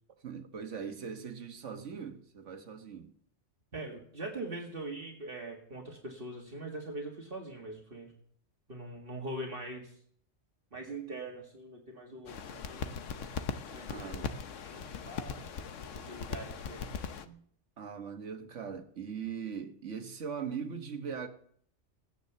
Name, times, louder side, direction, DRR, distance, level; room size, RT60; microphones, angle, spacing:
voice 1, 0.2-3.1 13.9-14.3 17.8-21.3, right 6 dB, 80° right, 1.6 m, -40 dB
voice 2, 3.7-8.1 8.7-10.0 10.7-13.3 13.7-14.3 14.7-15.5 15.9-17.4, right 2 dB, 50° right, 2.1 m, -43 dB
sound 1, 12.3-17.3, left 6 dB, 90° left, 1.2 m, -39 dB
16.0 x 9.5 x 6.8 m
omnidirectional pair, 1.2 m